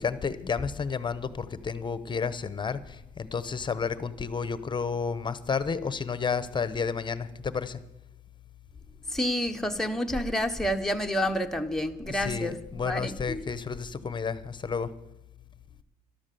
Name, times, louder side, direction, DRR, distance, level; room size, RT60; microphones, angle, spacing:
voice 1, 0.0-7.8 12.1-14.9, left 5 dB, 25° left, 15 dB, 1.0 m, -31 dB
voice 2, 9.1-13.4, left 1 dB, 5° left, 4 dB, 1.2 m, -29 dB
13.5 x 12.0 x 6.9 m, 0.88 s
cardioid pair, 110°, 17 cm